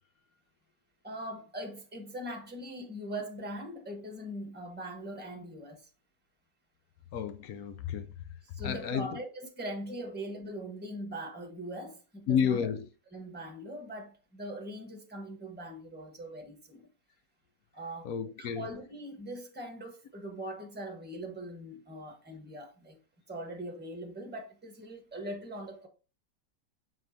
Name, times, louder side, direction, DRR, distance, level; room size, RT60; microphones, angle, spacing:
voice 1, 1.0-5.9 8.5-12.6 13.1-16.9 17.7-18.1 18.4-23.0 23.3-25.9, right 1 dB, 5° right, 1.3 m, -41 dB
voice 2, 7.1-8.1 8.6-9.2 12.3-12.9 18.0-18.7, left 7 dB, 65° left, 1.1 m, -31 dB
7.2 x 5.9 x 2.8 m
omnidirectional pair, 1.9 m